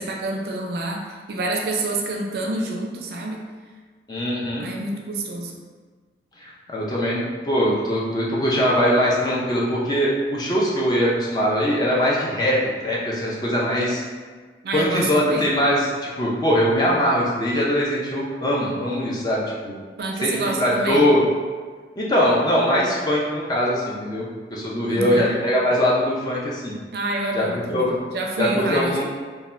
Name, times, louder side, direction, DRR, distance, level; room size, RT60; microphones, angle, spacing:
voice 1, 0.0-3.5 4.6-5.6 14.6-15.5 20.0-21.1 24.9-25.3 26.9-29.0, right 2 dB, 60° right, 1 dB, 0.4 m, -27 dB
voice 2, 4.1-4.7 6.4-14.0 14.7-19.8 20.2-20.3 20.6-21.2 22.0-26.8 27.3-28.0 28.4-29.0, equal, 20° left, -5 dB, 0.4 m, -21 dB
2.6 x 2.2 x 3.1 m, 1.5 s
head